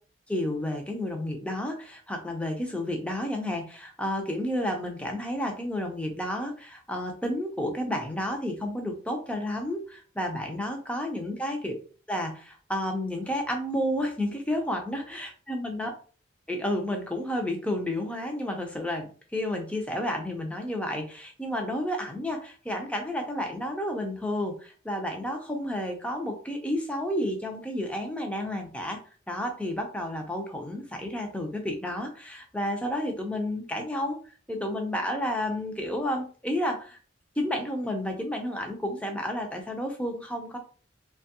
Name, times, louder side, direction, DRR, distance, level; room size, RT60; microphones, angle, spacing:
voice 1, 0.3-11.8 12.1-15.0 15.5-15.9 16.5-29.0 29.3-37.0 37.4-40.6, left 1 dB, 5° left, 3 dB, 0.5 m, -31 dB
3.0 x 2.2 x 2.8 m, 0.40 s
head